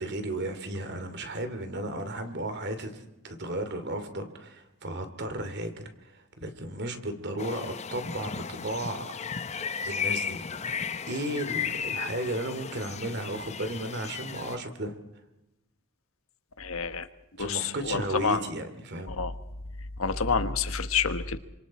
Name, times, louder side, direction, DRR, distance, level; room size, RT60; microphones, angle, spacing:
voice 1, 0.0-9.1 9.9-14.9 17.4-19.2, right 1 dB, 50° right, 8 dB, 2.7 m, -34 dB
sound 1, 7.4-14.6, left 6 dB, 30° left, 0.7 m, -35 dB
voice 2, 16.6-17.1 17.4-18.4 19.1-19.3 20.0-21.4, left 5 dB, 75° left, 10 dB, 1.4 m, -28 dB
28.5 x 26.0 x 4.3 m, 0.93 s
head